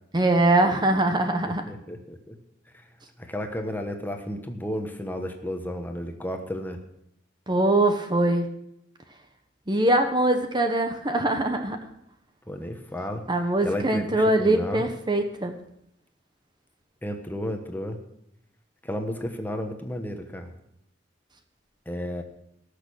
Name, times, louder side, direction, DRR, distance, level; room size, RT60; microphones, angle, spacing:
voice 1, 0.1-1.6 7.5-8.5 9.7-11.8 13.3-15.5, right 1 dB, 25° right, 6 dB, 1.0 m, -22 dB
voice 2, 1.7-2.4 2.7-2.9 3.2-6.8 12.5-13.3 13.6-14.8 17.0-18.0 18.8-20.5 21.9-22.2, equal, 10° left, 5 dB, 1.2 m, -32 dB
18.0 x 6.7 x 6.3 m, 0.78 s
head